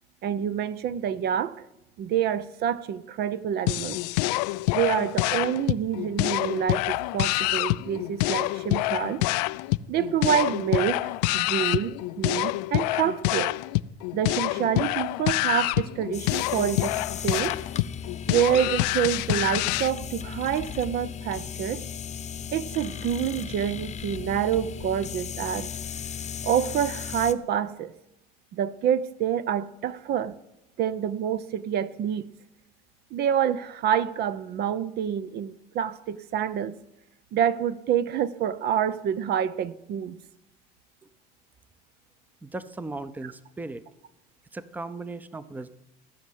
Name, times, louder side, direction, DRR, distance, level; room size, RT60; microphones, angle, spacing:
voice 1, 0.2-1.7 2.0-4.0 4.7-9.2 9.9-13.5 14.1-17.5 18.3-21.8 22.5-25.7 26.4-27.9 28.5-30.3 30.8-32.3 33.1-36.7 37.3-40.2, right 9 dB, 55° right, 15 dB, 0.7 m, -27 dB
sound 1, 3.7-19.9, left 20 dB, 90° left, 0.4 m, -27 dB
sound 2, 16.1-27.3, left 8 dB, 35° left, 0.9 m, -36 dB
voice 2, 42.4-43.8 44.5-45.7, right 2 dB, 10° right, 14 dB, 0.7 m, -37 dB
15.5 x 6.4 x 9.2 m, 0.90 s
supercardioid pair, 105°, 20 cm